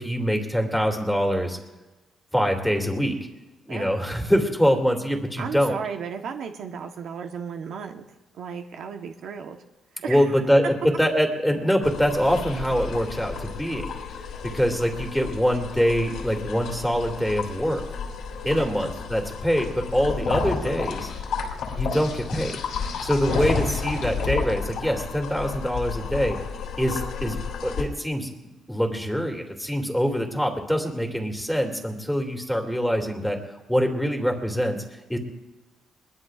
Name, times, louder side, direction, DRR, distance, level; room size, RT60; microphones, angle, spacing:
voice 1, 0.0-1.6 2.3-3.1 3.7-5.8 10.1-13.9 14.4-17.8 18.4-21.1 21.8-22.6 23.0-26.4 26.8-28.3 28.7-33.4 33.7-34.8 35.1-35.2, equal, ahead, 2 dB, 2.5 m, -24 dB
voice 2, 5.4-8.0 8.3-9.6 9.9-10.4 18.6-18.7 23.3-23.6, right 6 dB, 70° right, 4 dB, 1.1 m, -35 dB
sound 1, 11.8-27.8, left 5 dB, 80° left, 3.2 m, -31 dB
21.5 x 21.0 x 2.5 m, 1.1 s
cardioid pair, 90°, 0 cm